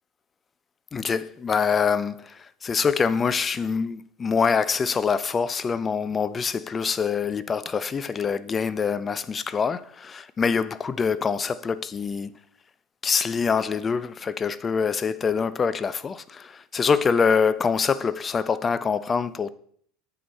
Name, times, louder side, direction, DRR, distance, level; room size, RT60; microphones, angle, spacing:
voice 1, 0.9-12.3 13.0-19.5, left 6 dB, 25° left, 0.4 m, -25 dB
7.8 x 6.1 x 4.2 m
supercardioid pair, 105°, 0 cm